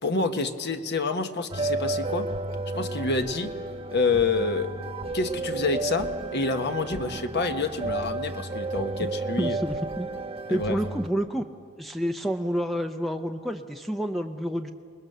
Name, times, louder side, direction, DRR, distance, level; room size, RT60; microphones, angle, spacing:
voice 1, 0.0-2.3 2.7-3.5 3.9-4.7 5.1-9.6 10.5-10.8, left 3 dB, 50° left, 7 dB, 1.3 m, -27 dB
sound 1, 1.5-11.1, right 2 dB, 25° right, 1.2 m, -32 dB
voice 2, 9.4-10.1 10.5-11.4 11.8-14.7, equal, ahead, 5 dB, 0.6 m, -29 dB
28.0 x 21.0 x 6.8 m, 2.3 s
head